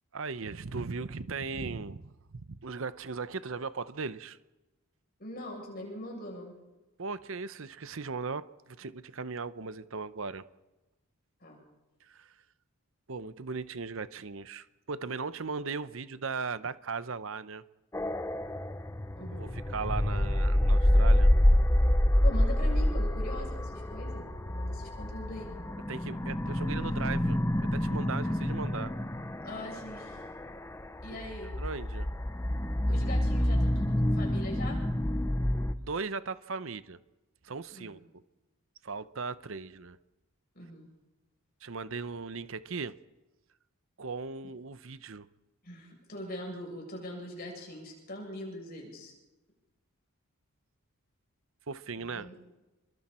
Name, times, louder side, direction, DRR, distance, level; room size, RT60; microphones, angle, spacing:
voice 1, 0.1-4.4 7.0-10.4 12.0-12.3 13.1-17.6 19.3-21.3 25.9-28.9 31.1-31.2 31.6-32.1 35.8-37.0 37.4-38.0 38.8-40.0 41.6-42.9 44.0-45.3 51.7-52.3, right 4 dB, 65° right, 14 dB, 0.8 m, -38 dB
voice 2, 5.2-6.5 11.4-11.6 19.2-19.5 22.2-25.5 29.4-30.3 31.0-31.6 32.9-34.8 37.7-38.0 40.5-40.9 45.6-49.1 52.1-52.4, left 1 dB, 45° left, -1 dB, 7.9 m, -42 dB
sound 1, 17.9-35.7, left 1 dB, 15° left, 0.8 m, -27 dB
29.5 x 23.0 x 4.4 m, 1.1 s
head